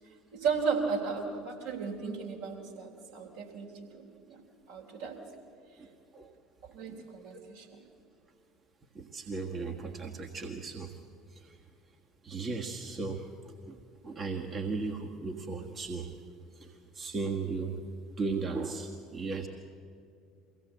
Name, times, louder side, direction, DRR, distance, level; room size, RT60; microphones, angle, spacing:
voice 1, 0.3-4.4 4.7-5.2 6.7-7.7, right 5 dB, 65° right, -1 dB, 3.5 m, -35 dB
voice 2, 5.8-6.3 6.9-7.1 8.9-10.9 11.3-11.6 12.2-13.3 13.6-13.7 14.0-16.1 16.6-17.8 18.2-19.5, right 4 dB, 30° right, 2 dB, 1.6 m, -36 dB
23.0 x 17.0 x 7.8 m, 2.5 s
figure-of-eight pair, 65°, 0 cm